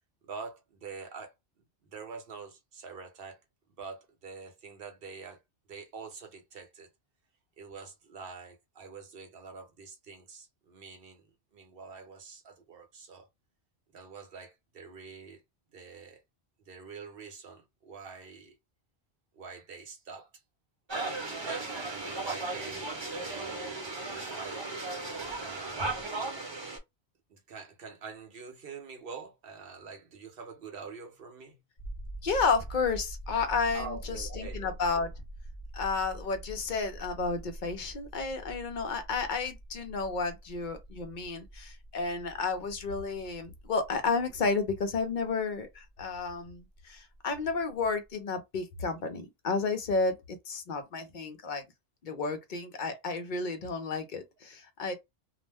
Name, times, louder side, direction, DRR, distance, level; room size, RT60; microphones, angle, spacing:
voice 1, 0.2-1.3 1.8-3.4 3.8-5.4 5.7-6.9 7.6-13.3 13.9-15.4 15.7-16.2 16.7-18.6 19.3-20.3 21.3-23.8 24.1-24.9 25.4-25.9 27.3-31.6 33.7-34.6, right 5 dB, 65° right, 0.9 m, -46 dB
sound 1, 20.9-26.8, right 3 dB, 30° right, 0.7 m, -36 dB
sound 2, 31.8-47.8 48.1-48.2, right 1 dB, 35° left, 1.0 m, -45 dB
voice 2, 32.2-35.1 35.7-51.6 52.0-54.9, left 4 dB, 55° left, 0.7 m, -32 dB
2.4 x 2.1 x 3.3 m
omnidirectional pair, 1.1 m